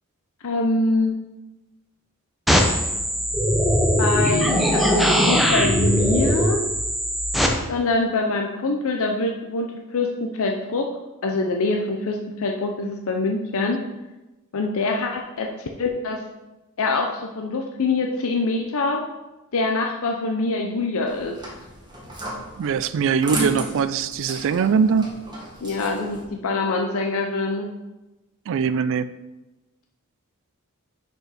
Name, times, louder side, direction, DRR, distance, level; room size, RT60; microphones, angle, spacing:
voice 1, 0.4-1.2 4.0-6.6 7.7-10.9 11.2-13.8 14.5-15.5 15.8-16.2 16.8-19.0 19.5-21.4 25.6-27.7, left 3 dB, 65° left, 2 dB, 0.6 m, -24 dB
sound 1, 2.5-7.5, equal, ahead, 0.7 m, -20 dB
sound 2, 21.1-26.2, right 1 dB, 20° right, 1.5 m, -34 dB
voice 2, 22.6-25.1 28.5-29.1, right 6 dB, 60° right, 14 dB, 0.3 m, -21 dB
6.1 x 5.3 x 4.9 m, 1.0 s
head